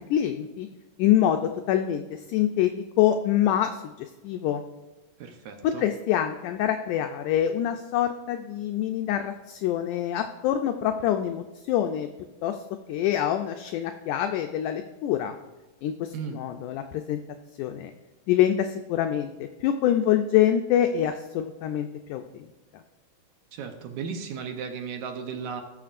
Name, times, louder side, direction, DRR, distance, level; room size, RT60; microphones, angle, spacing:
voice 1, 0.1-0.7 1.0-1.4 1.7-2.7 3.0-4.6 5.6-12.1 12.4-12.6 12.9-15.4 15.8-17.2 17.6-17.9 18.3-19.3 19.6-22.5, left 11 dB, 85° left, 6 dB, 1.8 m, -25 dB
voice 2, 5.2-5.9 16.1-16.4 23.5-25.6, right 6 dB, 70° right, 6 dB, 1.9 m, -35 dB
18.5 x 7.2 x 2.5 m, 1.2 s
omnidirectional pair, 4.1 m